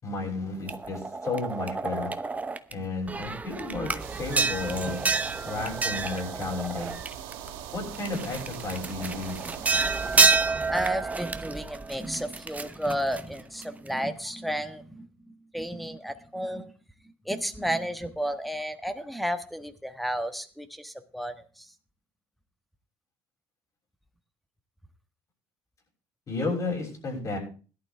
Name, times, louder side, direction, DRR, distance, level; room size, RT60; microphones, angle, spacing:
voice 1, 0.0-2.1 2.7-3.9 4.2-5.0 5.4-6.9 7.7-9.3 26.3-27.4, left 3 dB, 40° left, 1 dB, 6.3 m, -32 dB
sound 1, 0.7-2.7 3.1-7.5 7.9-13.9, right 4 dB, 15° right, 1.0 m, -28 dB
sound 2, 4.0-10.2, right 9 dB, 85° right, 2.1 m, -41 dB
voice 2, 10.7-15.1 15.5-16.7 17.2-21.6, equal, ahead, 10 dB, 1.4 m, -32 dB
17.0 x 11.5 x 3.4 m, 0.37 s
cardioid pair, 100°, 9 cm